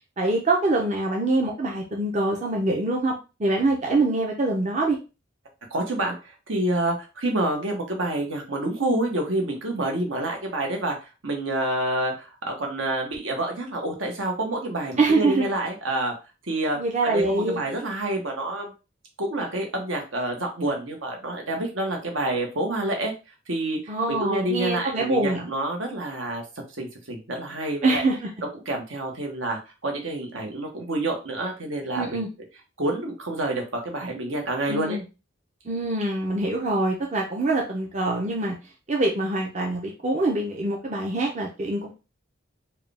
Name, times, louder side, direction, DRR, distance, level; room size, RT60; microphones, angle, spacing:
voice 1, 0.2-3.1 3.4-5.0 15.0-15.5 16.8-17.7 23.9-25.5 27.8-28.3 31.9-32.3 34.7-35.0 35.6-38.6 38.9-41.9, right 2 dB, 35° right, -1 dB, 0.6 m, -24 dB
voice 2, 5.7-16.1 16.5-18.7 19.2-23.1 23.5-26.4 26.8-28.0 28.7-32.2 32.8-35.0, right 1 dB, 75° right, 2 dB, 1.2 m, -28 dB
4.6 x 2.3 x 3.4 m, 0.30 s
head